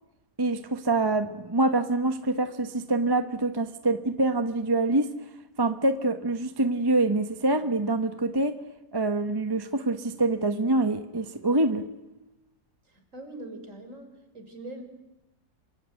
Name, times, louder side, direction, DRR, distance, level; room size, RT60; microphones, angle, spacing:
voice 1, 0.4-5.1 5.6-8.6 8.9-11.9, right 2 dB, 20° right, 9 dB, 0.8 m, -25 dB
voice 2, 12.8-14.1 14.3-14.8, right 1 dB, 40° right, 7 dB, 4.4 m, -42 dB
26.5 x 23.0 x 9.1 m, 0.99 s
omnidirectional pair, 2.0 m